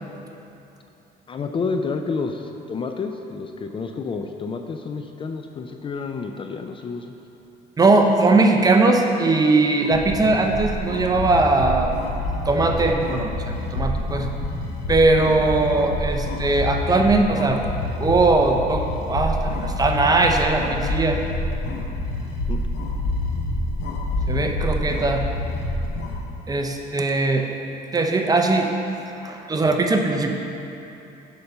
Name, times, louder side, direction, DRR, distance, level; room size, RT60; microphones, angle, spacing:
voice 1, 1.3-7.1 22.5-22.6, left 4 dB, 30° left, 5 dB, 0.4 m, -29 dB
voice 2, 7.8-11.9 12.5-14.3 14.9-17.6 18.0-21.2 24.3-25.2 26.5-27.4 27.9-28.7 29.2-30.3, right 3 dB, 20° right, 3 dB, 0.6 m, -20 dB
sound 1, 9.8-26.2, left 1 dB, 70° left, 1.1 m, -27 dB
6.7 x 5.2 x 5.5 m, 2.9 s
cardioid pair, 110°, 17 cm